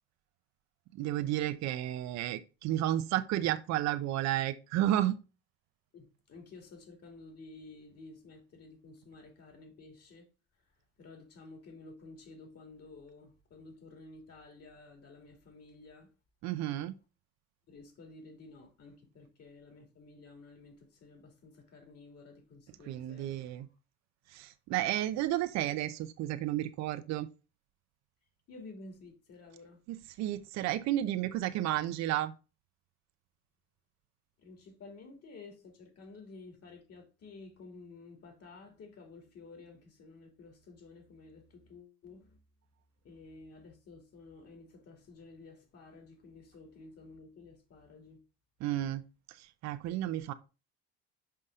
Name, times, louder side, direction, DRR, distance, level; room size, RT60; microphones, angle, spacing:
voice 1, 0.9-5.2 16.4-17.0 22.9-23.7 24.3-27.3 29.9-32.3 48.6-49.0 49.3-50.3, right 13 dB, 60° right, 0.7 m, -32 dB
voice 2, 5.9-10.2 11.0-16.1 17.7-23.3 28.5-29.8 34.4-42.4 43.0-48.2, left 3 dB, 50° left, 2.7 m, -52 dB
5.6 x 5.4 x 3.6 m
hypercardioid pair, 65°, 31 cm